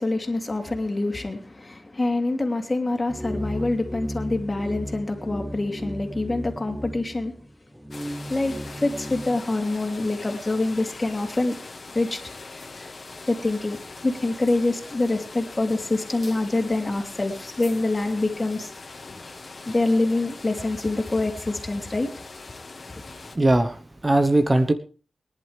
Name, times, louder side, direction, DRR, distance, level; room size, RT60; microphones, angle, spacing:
voice 1, 0.0-7.3 8.3-11.6 11.9-12.2 13.3-13.8 14.0-18.7 19.7-22.1, left 2 dB, 30° left, 4 dB, 2.8 m, -25 dB
sound 1, 3.1-9.4, equal, ahead, 0.7 m, -35 dB
sound 2, 7.9-23.4, left 3 dB, 55° left, 1.9 m, -41 dB
voice 2, 23.3-24.7, right 2 dB, 30° right, 8 dB, 1.0 m, -20 dB
23.0 x 11.0 x 3.4 m, 0.37 s
wide cardioid pair, 75°, 0 cm